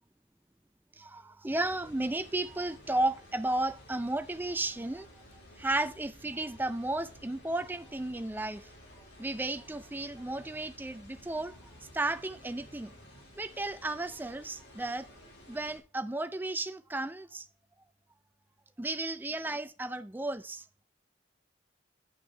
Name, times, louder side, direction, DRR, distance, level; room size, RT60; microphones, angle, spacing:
voice 1, 1.0-5.1 5.6-8.6 9.2-11.6 11.9-12.9 13.4-15.1 15.5-17.4 18.8-20.8, right 2 dB, 10° right, 0.4 m, -33 dB
sound 1, 1.5-15.8, left 1 dB, 85° left, 4.1 m, -54 dB
9.7 x 6.0 x 4.5 m
head